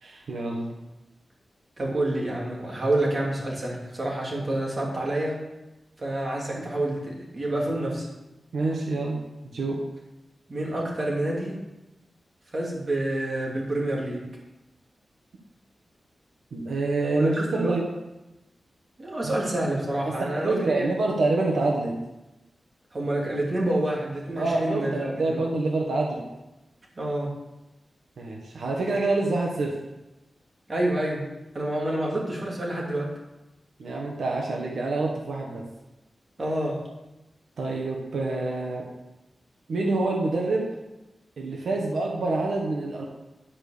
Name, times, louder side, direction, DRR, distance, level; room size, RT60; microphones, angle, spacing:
voice 1, 0.0-0.8 6.6-6.8 8.5-9.8 16.5-17.8 19.2-19.3 20.1-22.0 24.4-26.2 28.2-29.7 33.8-35.7 37.6-38.8 39.7-40.7 41.4-43.0, right 2 dB, 85° right, 0 dB, 1.5 m, -27 dB
voice 2, 1.8-5.4 6.0-8.1 10.5-11.6 12.5-14.2 17.1-17.8 19.0-20.9 22.9-25.5 27.0-27.3 30.7-31.2 31.5-33.1 36.4-36.8, right 1 dB, 35° right, -3 dB, 3.0 m, -28 dB
10.5 x 5.3 x 6.8 m, 1.0 s
wide cardioid pair, 125°, 0 cm